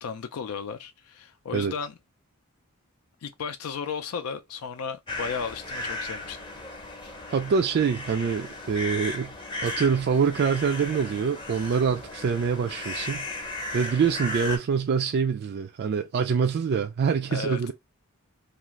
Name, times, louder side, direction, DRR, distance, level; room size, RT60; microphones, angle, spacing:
voice 1, 0.0-2.0 3.2-6.4 17.3-17.7, left 6 dB, 80° left, 0.4 m, -34 dB
sound 1, 5.1-14.6, left 2 dB, 20° left, 0.7 m, -36 dB
voice 2, 7.3-9.3 9.6-13.3 13.7-17.7, right 6 dB, 50° right, 0.3 m, -25 dB
2.5 x 2.4 x 3.0 m
head